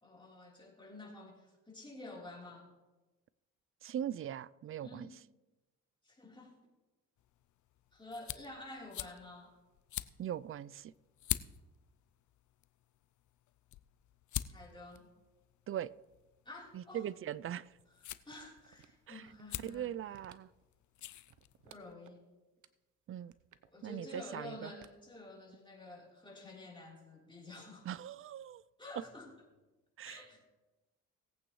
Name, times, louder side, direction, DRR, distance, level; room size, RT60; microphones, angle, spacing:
voice 1, 0.0-2.7 4.8-5.2 6.0-6.5 7.9-9.5 14.5-15.1 16.4-17.1 18.2-20.2 21.6-22.2 23.7-27.9 28.8-29.3 30.0-30.4, left 2 dB, 15° left, 3.6 m, -50 dB
voice 2, 3.8-5.1 10.2-10.9 15.7-15.9 16.7-17.7 19.1-19.2 19.6-20.5 23.1-23.3 23.8-24.7 27.9-28.6 29.0-29.1 30.0-30.2, right 10 dB, 45° right, 0.4 m, -40 dB
sound 1, 7.2-21.9, left 13 dB, 65° left, 0.5 m, -46 dB
sound 2, 18.3-19.6 20.0-20.7 21.0-22.2 22.6-22.7 23.2-24.0 24.8-25.8 26.1-26.2, right 9 dB, 70° right, 0.8 m, -61 dB
19.0 x 8.6 x 3.1 m
cardioid pair, 85°, 31 cm